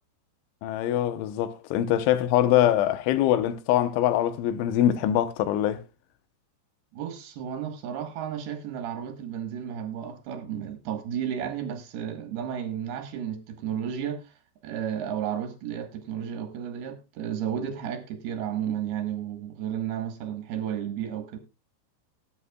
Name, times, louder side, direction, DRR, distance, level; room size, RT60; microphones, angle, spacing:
voice 1, 0.6-5.8, left 12 dB, 85° left, 3.3 m, -23 dB
voice 2, 6.9-14.3 14.6-21.4, right 9 dB, 65° right, 2.9 m, -33 dB
18.5 x 8.6 x 2.3 m
omnidirectional pair, 5.3 m